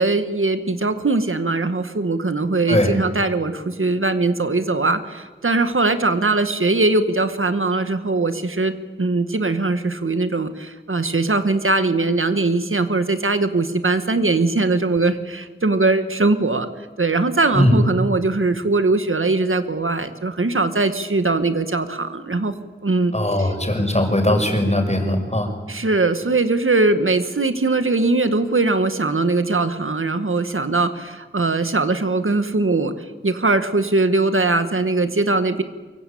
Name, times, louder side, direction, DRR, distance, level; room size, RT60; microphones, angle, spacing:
voice 1, 0.0-8.7 9.0-16.7 17.0-22.5 22.8-23.1 23.4-23.5 25.7-32.9 33.2-35.6, right 3 dB, 85° right, 9 dB, 1.7 m, -20 dB
voice 2, 23.1-25.5, left 1 dB, 35° left, 4 dB, 5.7 m, -19 dB
24.0 x 23.5 x 8.7 m, 1.4 s
wide cardioid pair, 45°, 21 cm